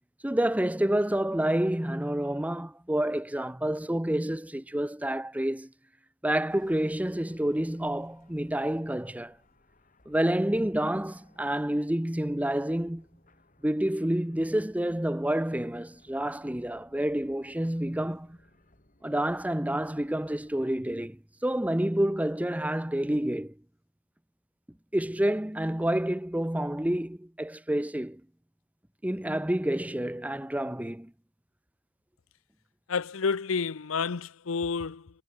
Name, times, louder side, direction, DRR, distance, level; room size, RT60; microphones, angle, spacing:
voice 1, 0.2-5.7 6.2-9.4 10.1-13.0 13.6-18.4 19.0-23.5 24.9-28.2 29.0-31.1, right 1 dB, 5° right, 0.7 m, -28 dB
sound 1, 6.5-20.9, left 1 dB, 40° left, 6.3 m, -63 dB
voice 2, 32.9-35.1, left 5 dB, 85° left, 0.7 m, -30 dB
head